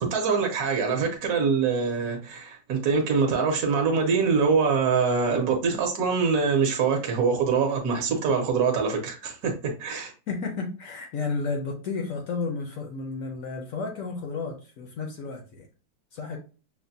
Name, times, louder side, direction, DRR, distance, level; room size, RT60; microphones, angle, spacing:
voice 1, 0.0-10.1, right 5 dB, 60° right, 1.0 m, -24 dB
voice 2, 10.3-15.7 16.1-16.4, left 4 dB, 70° left, 0.8 m, -32 dB
5.7 x 2.1 x 2.6 m
omnidirectional pair, 2.0 m